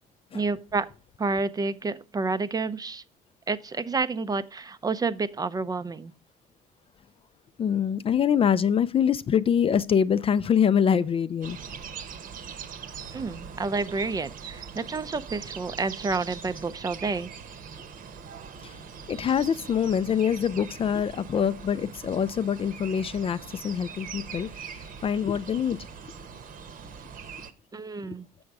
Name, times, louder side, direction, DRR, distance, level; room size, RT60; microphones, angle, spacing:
voice 1, 0.3-0.9 1.2-3.0 3.5-6.1 13.1-17.3 27.7-28.3, right 3 dB, 20° right, 0.5 m, -29 dB
voice 2, 7.6-11.6 18.6-18.8 19.1-25.9 28.1-28.2, left 8 dB, 35° left, 0.4 m, -25 dB
sound 1, 11.4-27.5, right 6 dB, 55° right, 1.0 m, -42 dB
7.0 x 6.4 x 4.7 m
cardioid pair, 110°, 17 cm